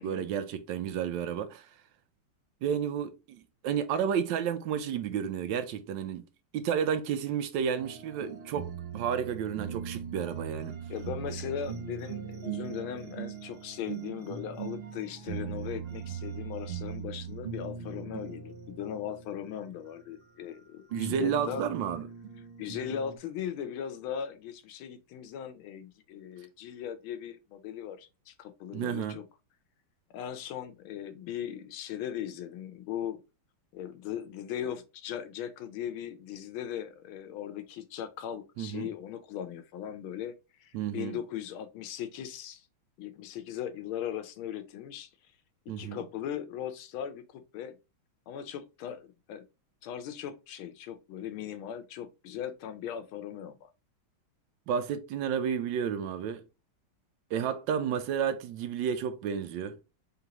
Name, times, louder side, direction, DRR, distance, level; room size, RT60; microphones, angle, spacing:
voice 1, 0.0-1.7 2.6-6.3 6.5-10.8 20.9-22.0 28.7-29.2 38.6-38.9 40.7-41.2 45.7-46.0 54.7-56.4 57.3-59.8, right 8 dB, 75° right, 1.1 m, -31 dB
sound 1, 7.8-20.6 20.9-23.2, right 7 dB, 55° right, 0.6 m, -40 dB
voice 2, 10.9-21.6 22.6-29.2 30.1-33.2 33.7-40.3 40.6-42.6 43.0-45.1 45.7-47.8 48.3-49.4 49.8-53.7, left 9 dB, 80° left, 1.5 m, -38 dB
3.9 x 3.7 x 2.8 m
omnidirectional pair, 2.3 m